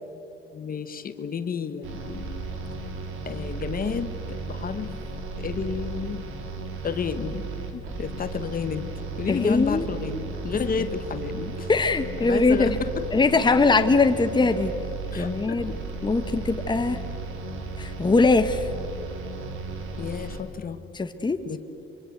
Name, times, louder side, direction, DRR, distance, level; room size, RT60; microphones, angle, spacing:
voice 1, 0.5-2.5 3.2-4.9 5.4-6.2 6.8-7.5 7.7-8.9 9.2-11.7 12.2-13.0 15.1-15.8 20.0-20.8 21.5-21.6, left 6 dB, 45° left, 10 dB, 1.3 m, -31 dB
sound 1, 1.8-20.4, right 3 dB, 90° right, 3.3 m, -35 dB
voice 2, 9.3-9.8 11.7-12.7 13.1-14.7 15.1-15.7 16.0-17.0 17.8-18.7 20.9-21.4, left 3 dB, 20° left, 8 dB, 1.2 m, -21 dB
24.5 x 24.5 x 8.1 m, 2.9 s
cardioid pair, 90°, 20 cm